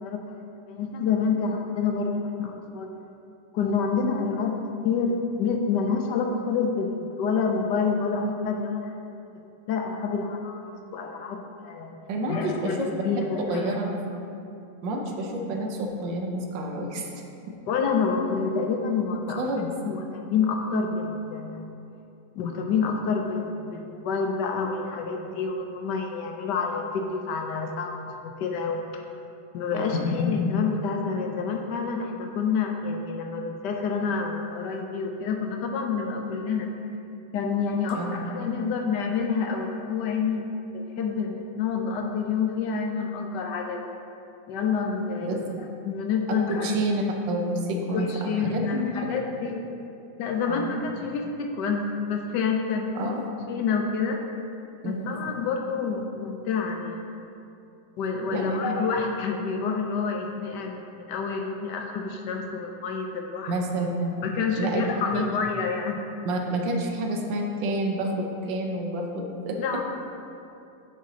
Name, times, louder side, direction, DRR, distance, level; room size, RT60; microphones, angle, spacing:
voice 1, 0.0-2.9 3.5-4.5 4.8-8.9 9.7-10.6 10.9-12.0 12.3-13.7 17.7-19.4 19.8-21.7 22.3-27.9 28.2-29.0 29.5-36.7 37.3-40.4 40.7-43.9 44.5-46.7 47.9-49.5 50.2-53.1 53.5-54.2 54.8-57.0 58.0-63.5 64.2-66.0 69.6-69.8, left 5 dB, 75° left, 3 dB, 1.2 m, -28 dB
voice 2, 12.1-12.9 13.5-13.9 14.8-17.1 17.5-17.6 19.4-19.7 29.7-30.2 37.9-38.2 45.2-45.5 46.3-49.1 49.4-49.6 50.5-50.8 52.9-53.3 54.8-55.2 58.3-58.7 63.5-64.2 64.6-64.8 65.1-65.2 66.2-69.6, right 1 dB, 80° right, 1 dB, 1.5 m, -29 dB
9.4 x 5.9 x 2.8 m, 2.7 s
omnidirectional pair, 2.0 m